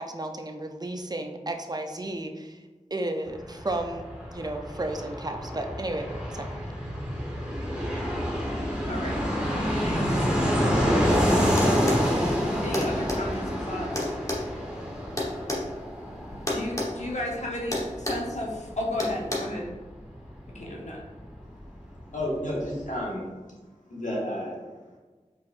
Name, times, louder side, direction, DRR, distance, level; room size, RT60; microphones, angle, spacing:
voice 1, 0.0-2.6 2.9-4.0 4.3-6.1 6.3-6.5, right 1 dB, 30° right, 5 dB, 0.5 m, -33 dB
Fixed-wing aircraft airplane, 3.3-21.7 21.9-22.0 22.2-22.9, equal, 5° right, 1.1 m, -28 dB
voice 2, 8.8-9.2 9.5-10.6 12.6-14.1 16.5-19.7 20.5-21.0, left 1 dB, 65° left, -2 dB, 0.9 m, -34 dB
sound 1, 11.6-12.1 12.7-13.2 13.9-15.6 16.5-16.9 17.2-17.4 17.7-18.3 19.0-19.4, left 1 dB, 25° left, 1.1 m, -29 dB
voice 3, 22.1-23.2 23.9-24.5, left 1 dB, 80° left, -5 dB, 1.3 m, -31 dB
4.8 x 4.1 x 2.5 m, 1.3 s
wide cardioid pair, 50°, 13 cm